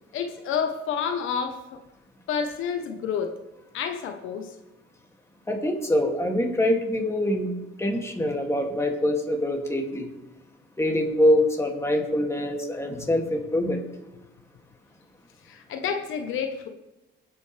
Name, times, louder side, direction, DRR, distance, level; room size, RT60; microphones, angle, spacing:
voice 1, 0.1-1.8 2.3-3.3 3.7-4.5 15.4-16.7, left 7 dB, 85° left, 5 dB, 1.1 m, -29 dB
voice 2, 5.5-7.5 7.8-10.1 10.8-13.8, left 1 dB, 15° left, 1 dB, 2.6 m, -24 dB
25.5 x 8.6 x 3.4 m, 0.98 s
cardioid pair, 90°, 20 cm